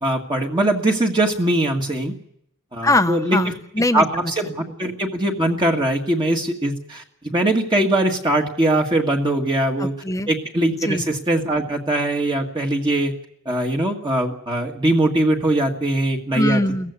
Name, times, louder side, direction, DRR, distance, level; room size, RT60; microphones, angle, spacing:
voice 1, 0.0-2.1 2.7-3.4 3.9-9.9 10.3-13.1 13.5-16.6, right 1 dB, 20° right, 0 dB, 1.8 m, -21 dB
voice 2, 2.8-4.0 9.8-10.3 10.8-11.0 16.3-16.9, left 1 dB, 15° left, 11 dB, 0.9 m, -21 dB
18.0 x 15.0 x 9.6 m, 0.73 s
head